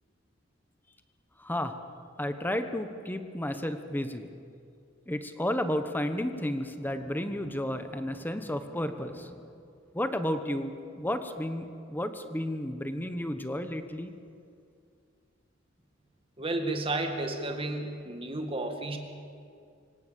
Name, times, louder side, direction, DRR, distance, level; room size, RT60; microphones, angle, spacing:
voice 1, 1.4-1.8 2.2-4.3 5.1-9.5 9.9-14.1, left 1 dB, 10° left, 8 dB, 1.2 m, -32 dB
voice 2, 16.4-19.0, right 2 dB, 30° right, 4 dB, 2.0 m, -32 dB
25.5 x 17.5 x 7.1 m, 2.4 s
head